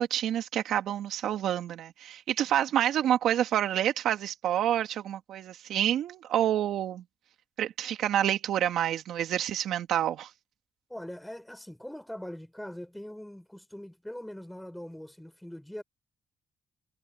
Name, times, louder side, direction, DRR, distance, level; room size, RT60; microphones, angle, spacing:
voice 1, 0.0-7.0 7.6-10.3, right 11 dB, 80° right, 2.6 m, -28 dB
voice 2, 10.9-15.8, left 1 dB, 5° left, 6.9 m, -42 dB
cardioid pair, 90°, 0 cm